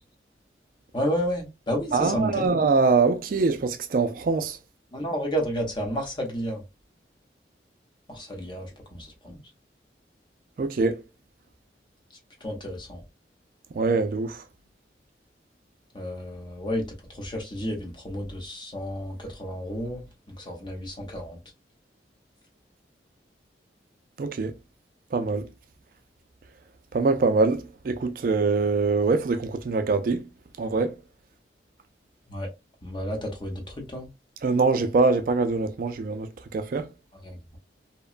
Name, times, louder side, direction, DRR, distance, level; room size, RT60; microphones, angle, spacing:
voice 1, 0.9-2.5 4.9-6.6 8.1-9.4 12.4-13.0 15.9-21.4 32.3-32.5 32.8-34.1 37.2-37.6, equal, 25° left, 0.8 m, -31 dB
voice 2, 1.9-4.6 10.6-11.0 13.8-14.4 24.2-24.5 25.1-25.5 26.9-30.2 30.6-31.0 34.4-36.9, right 4 dB, 50° right, 0.3 m, -23 dB
2.8 x 2.2 x 2.3 m
head